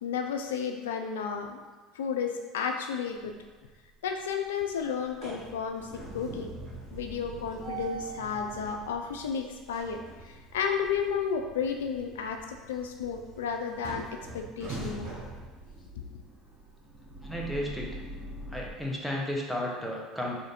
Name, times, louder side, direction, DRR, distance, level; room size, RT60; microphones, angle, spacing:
voice 1, 0.0-1.6 1.9-3.3 4.0-6.5 6.9-10.0 10.2-14.1 14.3-15.1, left 6 dB, 90° left, 4 dB, 0.4 m, -32 dB
sound 1, 3.2-3.7 4.1-18.7, right 2 dB, 45° right, 1.0 m, -43 dB
voice 2, 17.2-17.9 18.5-20.4, left 1 dB, ahead, -2 dB, 0.8 m, -33 dB
3.1 x 2.6 x 4.2 m, 1.3 s
hypercardioid pair, 85°, 0 cm